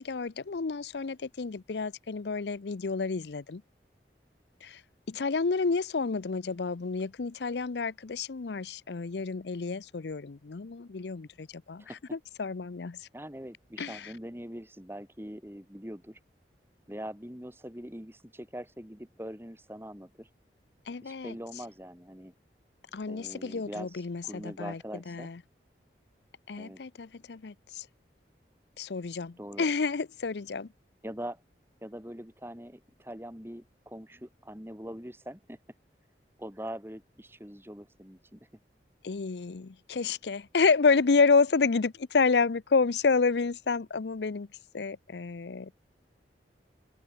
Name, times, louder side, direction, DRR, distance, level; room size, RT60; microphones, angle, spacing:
voice 1, 0.0-3.6 4.6-4.8 5.1-13.1 13.8-14.1 20.9-21.6 22.9-25.4 26.5-27.9 28.8-30.7 39.0-44.5 44.7-45.7, left 4 dB, 75° left, 0.6 m, -29 dB
voice 2, 13.1-16.2 16.9-20.3 21.0-22.3 23.1-25.3 26.6-26.8 29.4-29.7 31.0-31.4 31.8-35.6 36.4-38.5, equal, 15° right, 2.9 m, -42 dB
open air
head